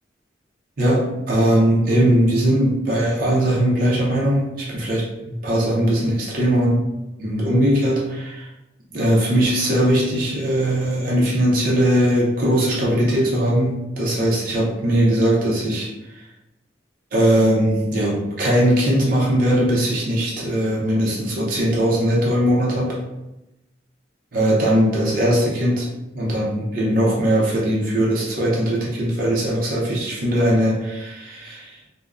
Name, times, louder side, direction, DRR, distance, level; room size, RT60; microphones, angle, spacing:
voice 1, 0.8-6.8 7.2-8.5 8.9-16.3 17.1-23.0 24.3-25.9 26.1-31.8, equal, 50° right, -5 dB, 0.5 m, -20 dB
3.4 x 2.0 x 2.3 m, 0.96 s
head